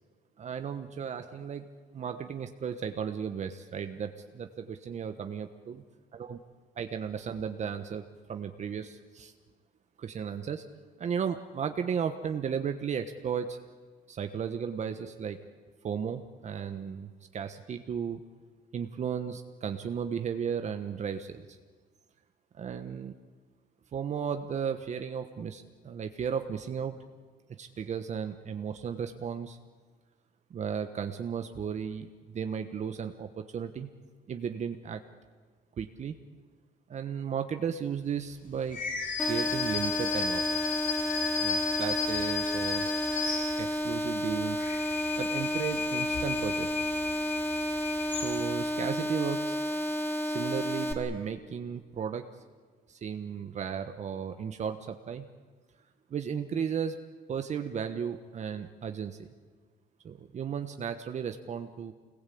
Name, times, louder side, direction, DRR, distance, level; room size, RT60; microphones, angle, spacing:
voice 1, 0.4-1.7 1.9-5.8 6.1-6.4 6.8-9.3 10.0-10.6 11.0-13.6 14.1-15.4 15.8-18.2 18.7-21.5 22.5-23.1 23.9-26.9 27.6-29.6 30.5-33.9 34.3-35.0 35.8-36.1 36.9-38.8 39.2-40.7 41.4-42.9 43.6-44.7 45.2-46.9 48.1-49.6 50.2-52.2 52.9-55.3 56.1-57.0 57.3-59.3 60.0-61.9, right 7 dB, 45° right, 7 dB, 1.2 m, -35 dB
sound 1, 38.7-44.0 44.4-48.7, left 6 dB, 50° left, 3.7 m, -34 dB
sound 2, 39.2-50.9, equal, 10° left, 3.0 m, -31 dB
25.5 x 20.5 x 8.6 m, 1.5 s
cardioid pair, 110°, 17 cm